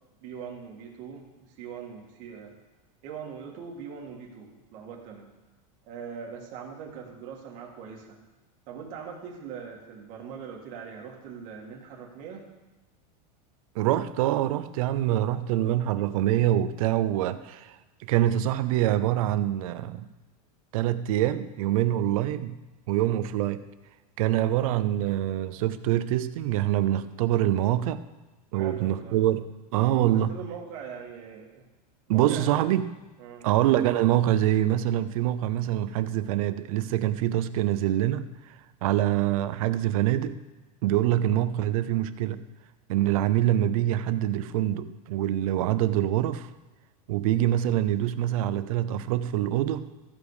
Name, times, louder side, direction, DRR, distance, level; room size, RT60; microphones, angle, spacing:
voice 1, 0.2-2.6 3.0-5.3 5.8-8.2 8.7-12.5 28.5-29.2 29.9-31.7 32.1-32.7 33.2-33.5, right 6 dB, 40° right, 0 dB, 1.9 m, -41 dB
voice 2, 13.8-17.8 18.0-20.1 20.7-22.6 22.9-23.6 24.2-28.0 28.5-30.3 32.1-33.0 33.4-38.5 38.8-40.4 40.8-42.4 42.9-46.5 47.1-49.9, right 13 dB, 65° right, 13 dB, 0.6 m, -25 dB
14.5 x 5.2 x 4.9 m, 1.1 s
supercardioid pair, 160°, 20 cm